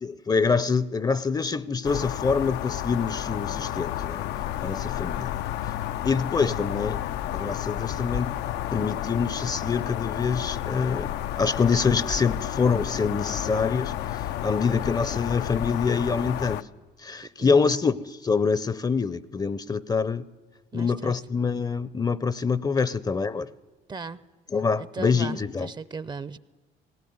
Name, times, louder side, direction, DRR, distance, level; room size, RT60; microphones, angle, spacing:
voice 1, 0.0-4.3 4.6-5.3 6.0-7.0 7.3-8.3 8.7-16.6 17.0-17.9 18.2-20.2 20.7-23.5 24.5-25.7, left 5 dB, 25° left, 0.6 m, -25 dB
sound 1, 1.8-16.6, left 12 dB, 85° left, 0.6 m, -31 dB
voice 2, 17.4-17.8 20.7-21.1 23.9-24.2 24.8-26.4, right 4 dB, 25° right, 0.6 m, -36 dB
18.5 x 18.0 x 9.5 m
cardioid pair, 110°, 17 cm